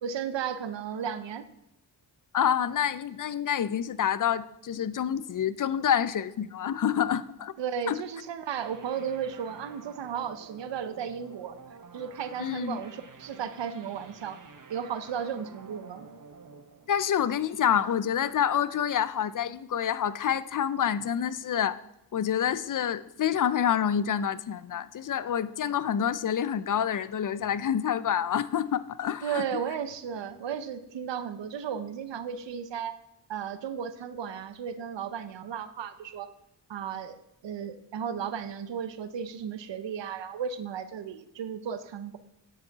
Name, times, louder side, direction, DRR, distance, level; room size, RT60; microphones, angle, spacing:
voice 1, 0.0-1.5 7.6-11.6 11.9-14.4 14.7-16.1 29.2-33.0 33.3-36.3 36.7-37.2 37.4-42.2, right 7 dB, 85° right, 12 dB, 0.7 m, -34 dB
voice 2, 2.3-7.5 7.9-8.0 12.4-12.8 16.9-21.8 22.1-29.4, left 9 dB, 50° left, 16 dB, 0.5 m, -27 dB
sound 1, 8.6-17.9, right 5 dB, 45° right, 0.9 m, -50 dB
8.8 x 6.9 x 4.0 m, 0.82 s
cardioid pair, 60°, 42 cm